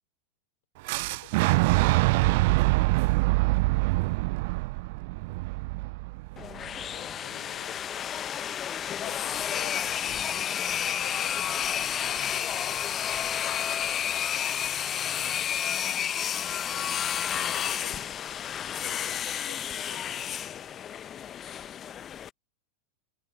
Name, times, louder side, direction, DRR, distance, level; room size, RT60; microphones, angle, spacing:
Boom, 0.9-6.8, right 24 dB, 50° right, 0.4 m, -24 dB
voice 1, 1.1-2.9 6.9-8.0 9.0-11.6 12.0-12.9 14.3-15.6 16.7-18.2 18.8-20.6, left 13 dB, 60° left, 4.7 m, -50 dB
sound 1, 6.4-22.3, left 9 dB, 25° left, 1.1 m, -31 dB
figure-of-eight pair, 90°, 0 cm